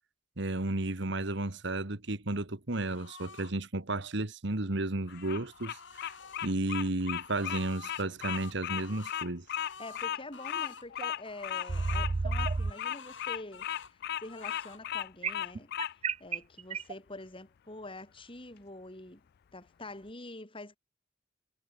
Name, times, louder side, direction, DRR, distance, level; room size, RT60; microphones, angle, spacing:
voice 1, 0.4-6.1 6.4-9.5, right 2 dB, 65° right, 1.8 m, -33 dB
sound 1, 2.7-3.5 4.9-6.5 7.0-10.9 11.2-12.1 12.5-13.9 14.2-14.8, left 5 dB, 70° left, 4.6 m, -49 dB
Bird vocalization bird call bird song, 5.1-15.9, left 11 dB, 55° left, 0.3 m, -36 dB
voice 2, 9.8-15.7 16.2-19.2 19.5-20.8, left 2 dB, 30° left, 4.7 m, -46 dB
sound 2, 11.0-11.1 11.7-12.7 15.2-16.9, right 4 dB, 35° right, 0.4 m, -31 dB
head